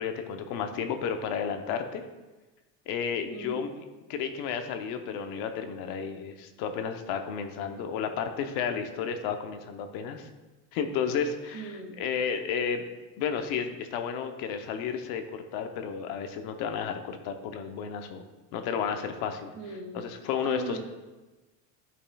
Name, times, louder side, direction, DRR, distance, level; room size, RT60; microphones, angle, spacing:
voice 1, 0.0-2.0 2.9-3.8 4.1-10.3 10.7-12.8 13.2-18.2 18.5-19.5 19.9-20.8, left 7 dB, 65° left, 7 dB, 0.8 m, -32 dB
voice 2, 11.5-12.0 19.5-20.0 20.4-20.8, right 3 dB, 65° right, 1 dB, 1.9 m, -39 dB
13.0 x 5.4 x 2.3 m, 1.2 s
cardioid pair, 160°, 41 cm